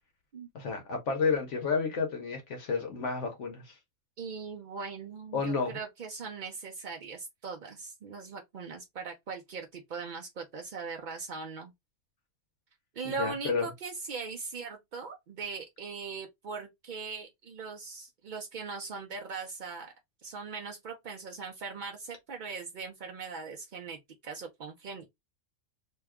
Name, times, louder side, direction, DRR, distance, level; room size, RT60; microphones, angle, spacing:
voice 1, 0.5-3.8 5.3-5.8 13.0-13.7, left 5 dB, 65° left, 1.0 m, -31 dB
voice 2, 4.2-11.7 12.9-19.9 20.2-25.1, right 5 dB, 65° right, 0.4 m, -40 dB
2.7 x 2.3 x 3.4 m
omnidirectional pair, 1.5 m